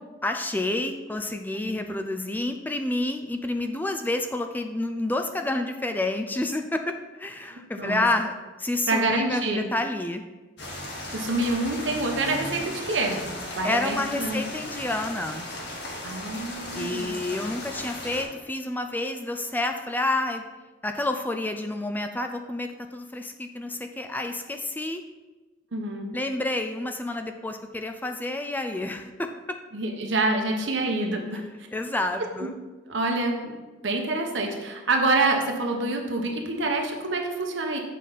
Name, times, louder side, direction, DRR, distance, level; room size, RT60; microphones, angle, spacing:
voice 1, 0.2-10.2 13.6-15.5 16.7-20.4 20.8-25.0 26.1-29.3 31.7-32.5, left 2 dB, 10° left, 6 dB, 0.4 m, -29 dB
voice 2, 7.5-8.0 8.9-9.7 11.1-14.4 16.0-17.2 25.7-26.1 29.7-31.4 32.9-33.6 33.8-37.8, right 2 dB, 70° right, 2 dB, 1.1 m, -27 dB
sound 1, 10.6-18.2, left 1 dB, 65° left, 1.5 m, -36 dB
7.6 x 5.1 x 4.1 m, 1.2 s
head